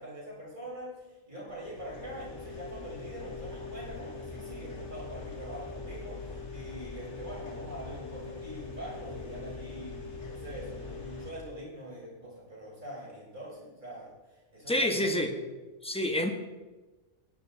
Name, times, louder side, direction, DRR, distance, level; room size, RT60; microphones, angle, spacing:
voice 1, 0.0-15.1, right 1 dB, 35° right, -5 dB, 5.2 m, -44 dB
sound 1, 1.5-11.3, left 3 dB, 60° left, 2.1 m, -42 dB
voice 2, 14.7-15.3 15.8-16.3, left 1 dB, 5° left, 4 dB, 1.1 m, -27 dB
16.0 x 10.5 x 4.1 m, 1.2 s
omnidirectional pair, 1.4 m